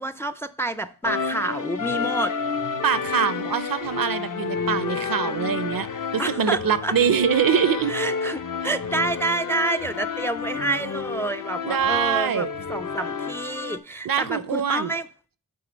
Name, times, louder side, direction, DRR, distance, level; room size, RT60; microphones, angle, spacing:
voice 1, 0.0-2.3 6.2-6.9 7.9-15.1, right 2 dB, 5° left, 0.3 m, -28 dB
sound 1, 1.0-13.8, left 5 dB, 60° left, 0.6 m, -30 dB
voice 2, 2.8-5.9 6.1-7.9 11.6-12.5 14.0-14.9, right 8 dB, 65° right, 0.5 m, -23 dB
7.7 x 3.6 x 5.1 m
wide cardioid pair, 45°, 37 cm